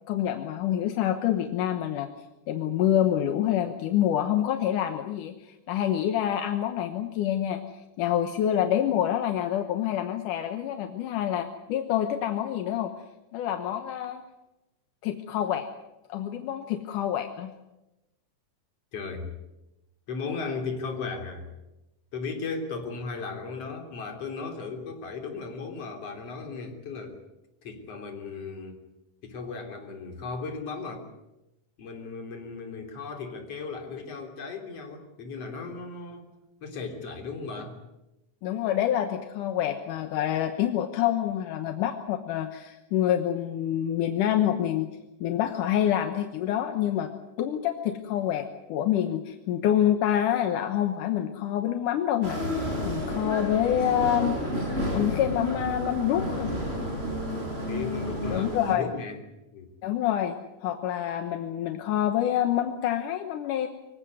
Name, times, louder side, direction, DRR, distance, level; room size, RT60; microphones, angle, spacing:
voice 1, 0.1-2.1 2.5-7.6 8.0-12.9 13.3-14.2 15.0-15.7 16.1-17.5 38.4-44.9 45.2-47.1 47.4-54.4 54.9-56.5 58.3-58.9 59.8-63.7, left 11 dB, 80° left, 7 dB, 2.6 m, -27 dB
voice 2, 18.9-19.3 20.1-21.5 22.1-27.2 27.6-28.8 29.2-31.1 31.8-36.3 36.6-37.8 57.6-59.2 59.5-59.7, left 4 dB, 50° left, 4 dB, 4.3 m, -36 dB
sound 1, 52.2-58.7, equal, 15° right, 5.6 m, -31 dB
25.0 x 16.5 x 9.5 m, 0.97 s
omnidirectional pair, 3.7 m